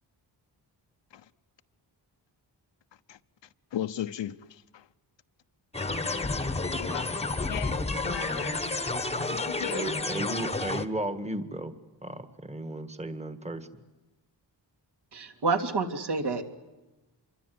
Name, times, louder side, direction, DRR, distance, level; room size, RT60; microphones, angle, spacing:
voice 1, 3.7-4.8 6.0-6.4 6.7-7.2 7.5-8.7 9.3-10.0, left 11 dB, 75° left, 1.0 m, -37 dB
sound 1, 5.7-10.8, left 3 dB, 15° left, 1.2 m, -30 dB
voice 2, 9.7-11.7 12.0-13.7, right 1 dB, 15° right, 1.7 m, -34 dB
voice 3, 15.1-16.4, right 4 dB, 65° right, 3.2 m, -28 dB
26.5 x 23.0 x 9.4 m
wide cardioid pair, 160°, 44 cm